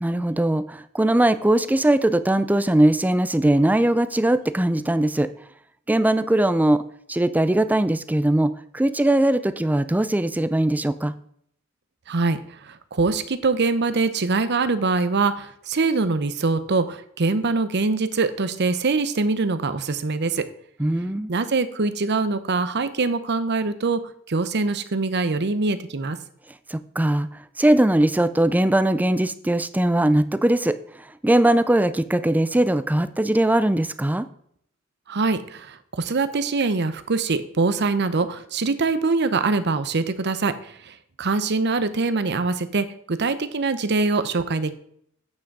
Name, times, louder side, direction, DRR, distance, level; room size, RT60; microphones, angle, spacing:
voice 1, 0.0-5.3 5.9-6.8 7.1-11.1 20.8-21.3 26.7-27.3 27.6-30.8 31.2-34.3, right 1 dB, 10° right, 13 dB, 0.4 m, -20 dB
voice 2, 12.1-12.4 12.7-20.4 21.3-24.0 24.3-26.2 35.1-40.5 40.9-44.7, right 3 dB, 55° right, 12 dB, 0.8 m, -23 dB
8.6 x 6.2 x 4.7 m, 0.67 s
head